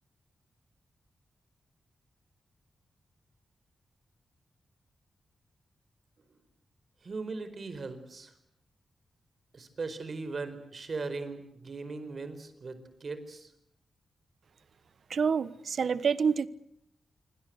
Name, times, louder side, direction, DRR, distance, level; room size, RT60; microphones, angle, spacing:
voice 1, 7.0-8.3 9.5-13.5, right 3 dB, 45° right, 4.7 m, -39 dB
voice 2, 15.1-16.5, right 6 dB, 60° right, 1.3 m, -27 dB
26.5 x 25.0 x 8.0 m
wide cardioid pair, 130°, 0 cm